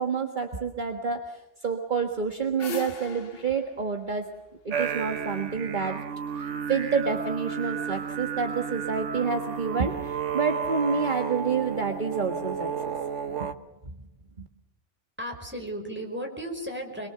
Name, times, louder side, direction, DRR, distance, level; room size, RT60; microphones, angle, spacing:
voice 1, 0.0-4.2 4.6-6.0 6.3-12.9 13.4-13.5, right 5 dB, 40° right, 4 dB, 1.7 m, -28 dB
sound 1, 2.1-5.3, left 3 dB, 55° left, 1.3 m, -40 dB
sound 2, 4.7-13.5, right 7 dB, 90° right, 1.4 m, -32 dB
voice 2, 15.2-17.1, equal, 10° right, 1 dB, 5.1 m, -35 dB
26.5 x 22.0 x 7.0 m, 0.90 s
omnidirectional pair, 1.2 m